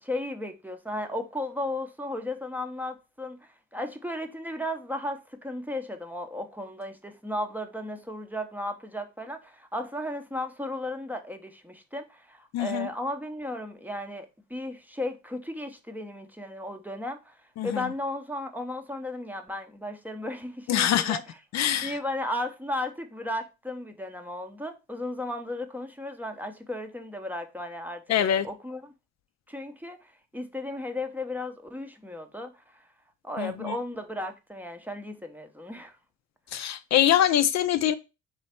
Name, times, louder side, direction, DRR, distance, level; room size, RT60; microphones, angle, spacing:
voice 1, 0.0-17.4 17.6-21.2 21.8-28.9 29.5-32.9 33.2-35.9, left 1 dB, 5° right, 0.6 m, -35 dB
voice 2, 12.5-12.9 17.6-17.9 20.7-21.2 21.5-22.0 28.1-28.5 33.4-33.8 36.5-37.9, left 10 dB, 60° left, 0.4 m, -24 dB
3.3 x 3.1 x 4.2 m
cardioid pair, 90°, 30 cm